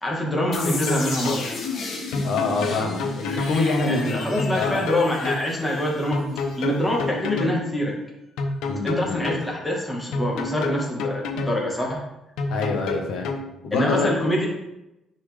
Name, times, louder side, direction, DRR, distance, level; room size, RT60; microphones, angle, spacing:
voice 1, 0.0-1.5 3.9-6.2 6.6-8.0 8.8-12.0 13.7-14.5, left 1 dB, 10° left, -3 dB, 1.4 m, -25 dB
sound 1, 0.5-7.3, left 3 dB, 45° left, 1.4 m, -34 dB
sound 2, 0.6-1.4 2.1-3.6 4.4-5.4 6.1-7.6 8.4-9.4 10.1-11.6 12.4-13.4, left 3 dB, 90° left, 0.9 m, -28 dB
voice 2, 2.2-4.2 4.5-4.8 8.6-9.2 12.5-13.3 13.6-14.1, left 3 dB, 70° left, 2 dB, 1.2 m, -25 dB
9.9 x 4.2 x 3.3 m, 0.90 s
cardioid pair, 160°, 0 cm